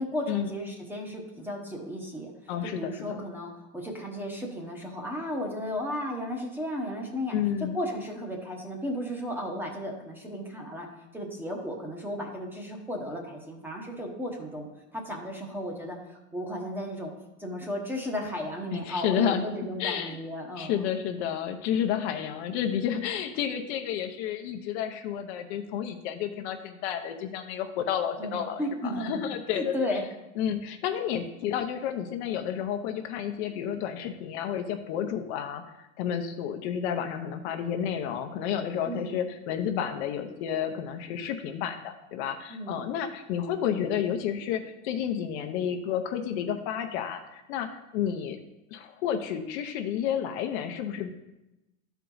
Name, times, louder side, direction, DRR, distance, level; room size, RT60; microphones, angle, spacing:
voice 1, 0.0-2.3 2.6-7.3 7.7-10.9 11.1-17.1 17.4-20.9 28.2-29.3 29.5-30.0 38.9-39.2 42.5-42.9, equal, 5° right, 0 dB, 1.0 m, -34 dB
voice 2, 2.5-3.2 7.3-7.8 18.7-19.5 19.8-20.2 20.6-29.9 30.4-48.4 48.7-51.1, left 9 dB, 55° left, 6 dB, 0.8 m, -31 dB
12.0 x 4.6 x 3.9 m, 0.94 s
supercardioid pair, 135°, 40 cm